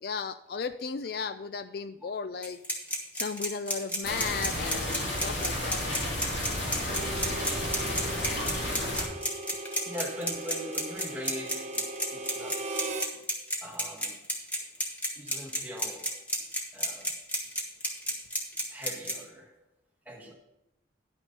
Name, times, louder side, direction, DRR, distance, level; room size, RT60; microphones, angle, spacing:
voice 1, 0.0-2.6 3.1-5.8, left 5 dB, 55° left, 0.3 m, -35 dB
sound 1, 2.4-19.1, equal, 10° left, 1.2 m, -31 dB
sound 2, 4.0-9.0, left 1 dB, 70° left, 3.1 m, -32 dB
Harmonica, 6.8-13.1, right 2 dB, 40° right, 0.7 m, -39 dB
voice 2, 9.8-12.8 13.6-14.2 15.2-16.2 16.7-17.1 18.7-19.5 20.0-20.3, equal, 10° right, 1.4 m, -41 dB
10.0 x 6.2 x 5.3 m
head